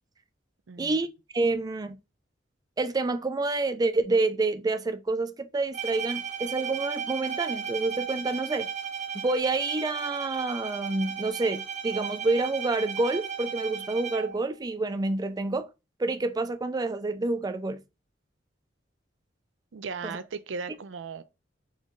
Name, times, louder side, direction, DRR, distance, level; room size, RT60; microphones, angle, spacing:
voice 1, 0.7-1.0 19.7-21.2, right 5 dB, 90° right, 0.5 m, -37 dB
voice 2, 1.3-2.0 2.8-8.7 9.2-15.7 16.0-17.8 20.0-20.2, right 3 dB, 20° right, 0.4 m, -28 dB
Bowed string instrument, 5.7-14.5, right 7 dB, 40° right, 0.9 m, -35 dB
3.9 x 3.1 x 3.6 m
head